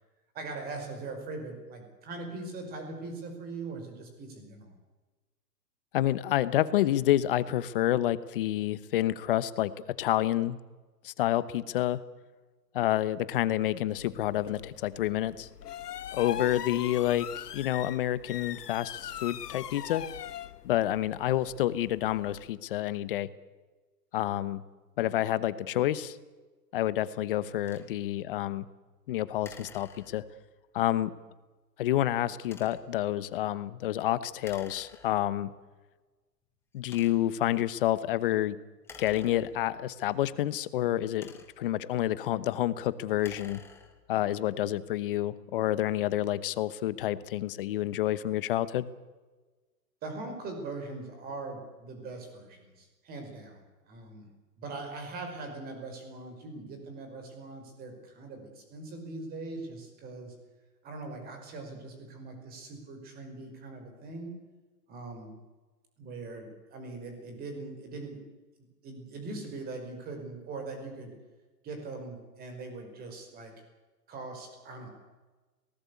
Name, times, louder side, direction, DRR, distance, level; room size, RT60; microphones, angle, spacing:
voice 1, 0.3-4.7 50.0-54.3 54.6-60.4 60.8-64.4 64.9-65.4 66.0-68.2 68.6-71.2 71.6-73.5 74.1-74.9, right 3 dB, 20° right, 5 dB, 5.2 m, -41 dB
voice 2, 5.9-9.7 10.0-10.6 11.0-12.0 12.7-15.5 16.1-20.0 20.6-23.3 24.1-24.6 25.0-26.2 26.7-28.7 29.1-30.2 30.7-31.1 31.8-35.5 36.7-38.6 39.0-41.3 41.6-43.6 44.1-48.9, left 13 dB, 35° left, 16 dB, 1.0 m, -28 dB
sound 1, 13.9-22.5, left 10 dB, 70° left, 1.4 m, -42 dB
sound 2, 27.6-27.9 29.4-30.5 32.4-33.0 34.4-35.4 36.1-36.2 36.8-37.4 38.8-39.9 40.9-41.8 43.1-44.2, left 5 dB, 5° left, 1.1 m, -51 dB
25.5 x 19.0 x 8.4 m, 1.3 s
hypercardioid pair, 160°, 48 cm